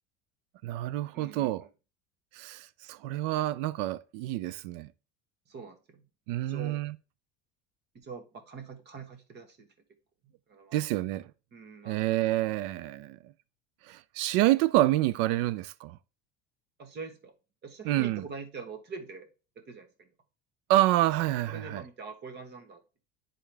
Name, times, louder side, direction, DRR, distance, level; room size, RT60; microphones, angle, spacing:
voice 1, 0.6-1.7 2.3-4.9 6.3-6.9 10.7-11.3 11.9-13.2 13.9-16.0 17.9-18.2 20.7-21.8, right 15 dB, 80° right, 0.5 m, -28 dB
voice 2, 1.1-1.7 5.5-6.0 6.4-6.8 7.9-9.7 10.2-10.8 11.5-12.2 16.8-17.3 17.6-19.3 19.5-20.1 21.5-22.8, right 5 dB, 35° right, 1.3 m, -44 dB
10.0 x 3.8 x 3.4 m
cardioid pair, 145°, 30 cm